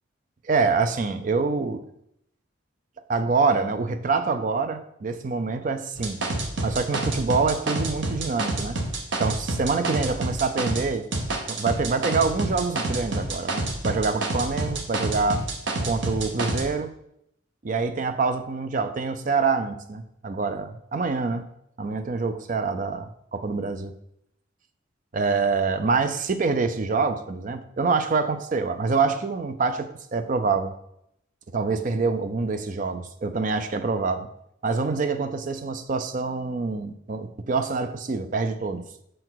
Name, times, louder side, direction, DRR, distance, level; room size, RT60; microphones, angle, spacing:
voice 1, 0.4-1.8 3.1-6.2 6.6-8.8 9.2-11.1 11.5-15.5 15.8-16.9 17.6-21.4 21.8-23.9 25.1-30.7 31.5-34.3 34.6-38.8, right 4 dB, 40° right, 9 dB, 0.4 m, -26 dB
sound 1, 6.0-10.9 11.1-16.6, right 2 dB, 60° right, 0.9 m, -28 dB
6.3 x 4.5 x 3.9 m, 0.76 s
head